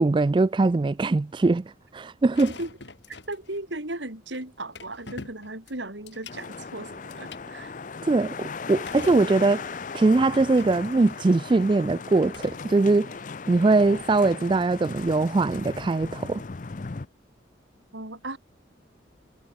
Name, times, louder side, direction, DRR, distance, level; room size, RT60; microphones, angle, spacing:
voice 1, 0.0-1.6 1.9-2.5 8.0-13.1 13.5-16.4, right 3 dB, 25° right, 0.3 m, -22 dB
sound 1, 2.3-3.6 4.3-4.4 4.8-6.6 7.1-7.4 8.9-9.8 10.1-11.4 12.1-12.7, left 3 dB, 70° left, 2.2 m, -45 dB
voice 2, 3.1-7.7 17.9-18.4, right 2 dB, 75° right, 4.8 m, -36 dB
sound 2, 6.3-17.1, left 4 dB, 45° left, 0.6 m, -38 dB
head